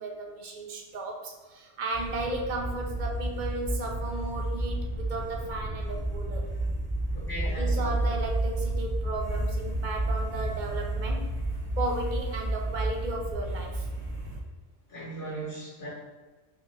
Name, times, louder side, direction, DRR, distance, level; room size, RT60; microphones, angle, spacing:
voice 1, 0.0-6.5 7.4-11.4 11.8-13.9, right 2 dB, 55° right, 1 dB, 0.5 m, -35 dB
sound 1, 1.9-14.4, right 1 dB, 25° right, 0.9 m, -31 dB
voice 2, 7.1-7.9 14.9-15.9, right 1 dB, 45° left, -8 dB, 1.3 m, -38 dB
3.3 x 3.1 x 3.2 m, 1.3 s
omnidirectional pair, 1.3 m